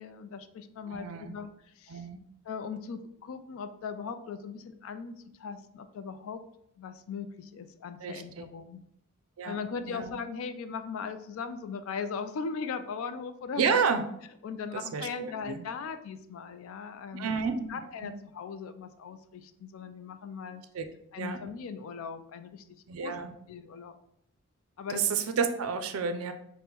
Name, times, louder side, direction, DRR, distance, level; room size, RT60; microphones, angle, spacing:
voice 1, 0.0-1.5 1.8-2.1 2.4-6.4 6.8-8.8 9.4-13.9 14.4-17.4 17.7-20.6 21.1-22.6 23.0-23.1 23.5-24.0 24.8-25.0, left 5 dB, 65° left, 10 dB, 0.3 m, -39 dB
voice 2, 0.9-1.3 1.9-2.2 8.0-8.4 9.4-9.6 9.9-10.1 13.6-14.0 14.7-15.6 17.1-17.7 18.0-18.1 20.7-20.9 21.2-21.4 22.9-23.3 24.9-26.3, right 6 dB, 70° right, 8 dB, 0.4 m, -30 dB
5.2 x 2.1 x 2.9 m, 0.74 s
head